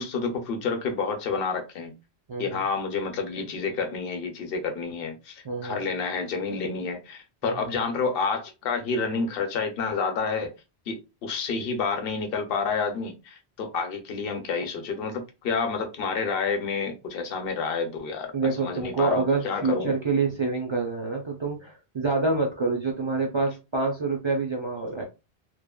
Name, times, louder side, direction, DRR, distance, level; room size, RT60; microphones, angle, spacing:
voice 1, 0.0-1.9 2.4-10.5 10.9-18.3 18.6-19.9, left 5 dB, 65° left, 0.8 m, -29 dB
voice 2, 2.3-2.6 5.4-5.9 7.4-7.7 18.3-25.0, right 3 dB, 50° right, 0.3 m, -27 dB
3.1 x 2.1 x 2.2 m
omnidirectional pair, 1.1 m